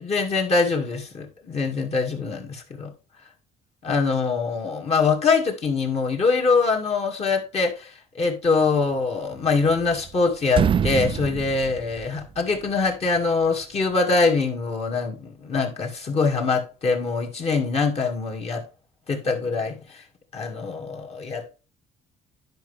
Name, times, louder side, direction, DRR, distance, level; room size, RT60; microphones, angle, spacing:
voice 1, 0.0-2.9 3.8-7.9 8.2-18.6 19.1-19.8 20.3-21.4, left 4 dB, 40° left, 2.2 m, -23 dB
sound 1, 9.3-10.2 10.5-12.6, right 7 dB, 30° right, 0.4 m, -26 dB
10.5 x 5.5 x 3.5 m
cardioid pair, 110°, 17 cm